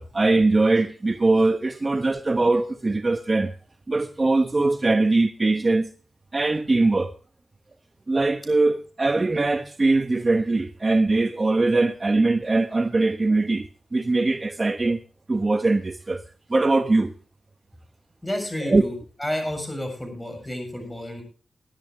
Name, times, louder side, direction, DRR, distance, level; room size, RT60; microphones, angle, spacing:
voice 1, 0.0-3.5 3.9-5.9 6.3-7.1 8.1-13.7 13.9-15.0 15.3-16.2 16.5-17.1 18.6-18.8, right 3 dB, 35° right, 0.9 m, -21 dB
voice 2, 18.2-18.9 19.2-21.2, left 1 dB, 10° left, 7.4 m, -30 dB
21.5 x 11.0 x 3.2 m
cardioid pair, 80°, 0 cm